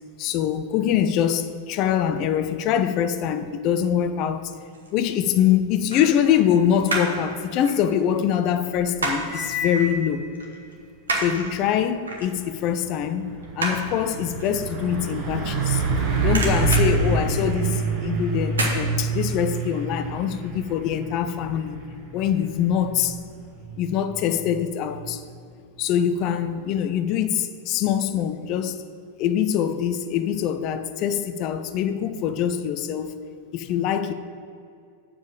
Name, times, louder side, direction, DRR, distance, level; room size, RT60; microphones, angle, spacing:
voice 1, 0.2-4.5 4.9-10.2 11.2-15.8 16.2-21.8 22.1-23.2 23.8-25.2 25.8-28.9 29.2-33.1 33.5-34.1, left 9 dB, 40° left, 10 dB, 0.5 m, -24 dB
sound 1, 4.4-5.0 5.9-7.2 7.5-9.4 9.8-9.9 10.3-15.9 16.2-17.9 18.5-18.8 19.2-19.3, right 2 dB, 70° right, 1.6 m, -30 dB
Cymbal, 9.2-10.7, left 3 dB, 5° right, 1.8 m, -32 dB
Truck, 12.2-12.5 12.8-25.4, right 4 dB, 40° right, 1.5 m, -27 dB
7.3 x 5.1 x 7.3 m, 2.3 s
figure-of-eight pair, 90°, 0 cm